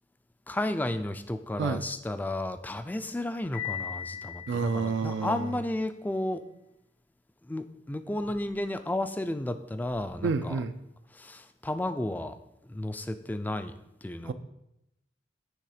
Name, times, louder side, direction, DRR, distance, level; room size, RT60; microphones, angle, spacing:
voice 1, 0.5-6.4 7.4-10.6 11.1-12.4 12.7-13.7 14.0-14.3, left 1 dB, 10° left, 10 dB, 0.3 m, -33 dB
Piano, 3.5-5.5, left 10 dB, 85° left, 2.1 m, -39 dB
voice 2, 4.5-5.4 10.2-10.7 14.3-14.4, right 4 dB, 70° right, 10 dB, 0.4 m, -29 dB
9.4 x 3.4 x 4.9 m, 0.85 s
head